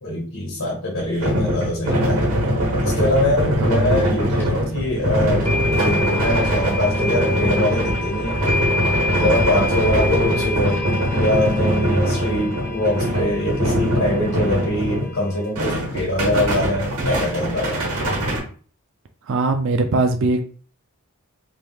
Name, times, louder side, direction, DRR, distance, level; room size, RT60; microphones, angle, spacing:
voice 1, 0.0-2.3 2.8-8.4 9.1-17.8, left 1 dB, 75° left, 1.3 m, -23 dB
sound 1, 1.0-15.2 15.5-18.4, equal, 75° right, 1.1 m, -22 dB
voice 2, 3.6-4.0 4.6-4.7 10.3-10.7 19.3-20.4, right 3 dB, 60° right, 0.4 m, -22 dB
sound 2, 4.4-4.5 5.4-15.5, left 3 dB, 10° left, 0.5 m, -28 dB
3.0 x 2.6 x 3.5 m
head